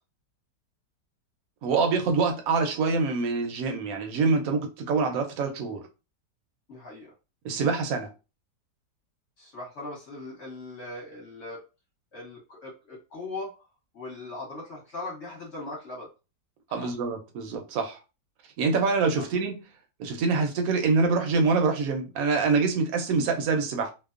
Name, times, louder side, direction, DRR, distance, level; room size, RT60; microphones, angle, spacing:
voice 1, 1.6-5.8 7.4-8.1 16.7-18.0 18.6-19.6 20.0-23.9, right 4 dB, 70° right, 0.9 m, -25 dB
voice 2, 6.7-7.1 9.4-11.6 12.1-13.7 13.9-16.1 16.7-16.9 19.2-19.3, left 2 dB, 50° left, 1.1 m, -39 dB
2.8 x 2.0 x 2.3 m
omnidirectional pair, 1.8 m